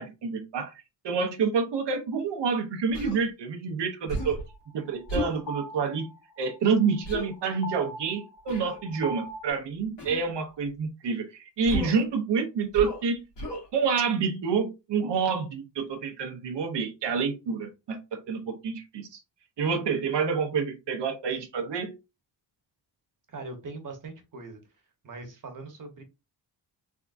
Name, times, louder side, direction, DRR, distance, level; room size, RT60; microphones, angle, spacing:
voice 1, 0.0-4.4 4.7-6.1 6.4-13.2 13.7-19.2 19.6-21.9, right 5 dB, 90° right, 4 dB, 0.8 m, -28 dB
Human voice, 2.9-3.2 4.1-4.5 5.1-5.4 7.0-7.3 8.5-8.8 10.0-10.3 11.7-12.0 12.7-13.0 13.4-13.7, equal, 85° left, 1.8 m, -33 dB
sound 1, 4.2-9.5, right 2 dB, 55° left, 0.9 m, -41 dB
voice 2, 23.3-24.6 25.0-26.0, right 3 dB, 50° right, 4 dB, 1.1 m, -41 dB
3.6 x 3.4 x 2.5 m, 0.25 s
wide cardioid pair, 160°, 41 cm